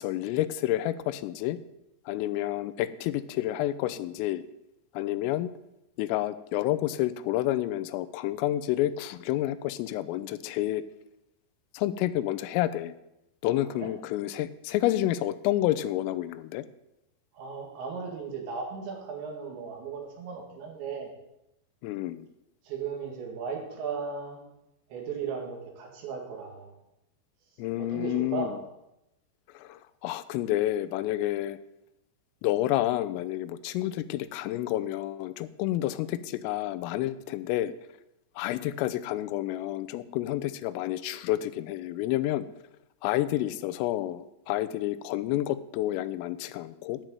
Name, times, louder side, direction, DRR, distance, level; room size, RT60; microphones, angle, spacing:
voice 1, 0.0-1.6 2.1-4.4 4.9-5.5 6.0-10.8 11.7-12.9 13.4-16.7 21.8-22.3 27.6-28.6 29.5-31.6 32.4-37.7 38.4-42.5 43.0-47.0, left 14 dB, 90° left, 14 dB, 3.2 m, -29 dB
voice 2, 17.3-21.1 22.6-24.4 24.9-26.7 27.8-28.5, right 6 dB, 65° right, 1 dB, 4.2 m, -36 dB
10.5 x 6.2 x 9.0 m, 0.88 s
omnidirectional pair, 5.8 m